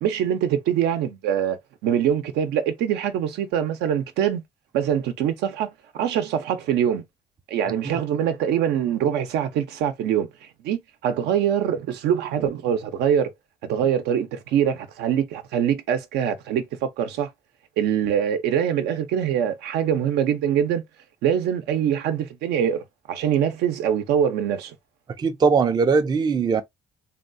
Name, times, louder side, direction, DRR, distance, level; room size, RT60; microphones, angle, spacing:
voice 1, 0.0-4.4 4.7-5.7 5.9-7.0 7.5-10.3 10.6-13.3 13.7-17.3 17.8-20.8 21.2-24.7, right 9 dB, 80° right, 0.6 m, -23 dB
voice 2, 25.2-26.6, right 5 dB, 25° right, 0.4 m, -20 dB
3.4 x 2.3 x 2.5 m
cardioid pair, 110°, 17 cm